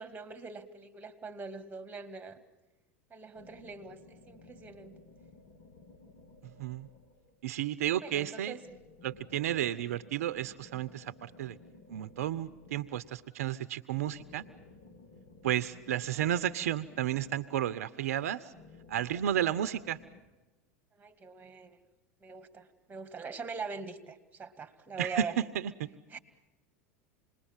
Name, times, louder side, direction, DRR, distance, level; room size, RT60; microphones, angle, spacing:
voice 1, 0.0-2.4 3.1-5.0 8.0-8.6 20.9-21.8 22.2-25.3 26.1-26.2, right 4 dB, 20° right, 10 dB, 2.2 m, -42 dB
sound 1, 3.3-7.5 8.6-13.3 13.9-17.9 18.5-20.2, left 3 dB, 60° left, 3.5 m, -56 dB
voice 2, 6.4-6.9 7.4-8.6 9.0-11.6 11.9-14.4 15.4-18.5 18.9-20.0 25.0-25.9, right 11 dB, 80° right, 15 dB, 0.7 m, -32 dB
27.5 x 20.5 x 7.3 m, 1.1 s
hypercardioid pair, 90°, 8 cm